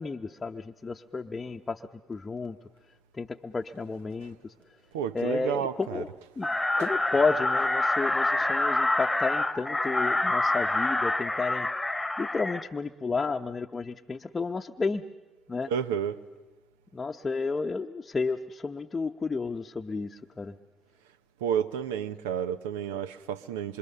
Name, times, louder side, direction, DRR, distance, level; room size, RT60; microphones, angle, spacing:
voice 1, 0.0-2.6 3.1-4.5 5.1-6.1 6.4-6.5 6.8-11.7 12.2-15.0 15.5-15.7 16.9-20.5, left 4 dB, 25° left, 0.8 m, -31 dB
voice 2, 4.9-6.0 6.8-6.9 15.7-16.2 21.4-23.8, right 8 dB, 90° right, 0.8 m, -31 dB
sound 1, 6.4-12.6, left 2 dB, 10° left, 1.4 m, -27 dB
26.0 x 24.5 x 6.8 m
hypercardioid pair, 65°, 0 cm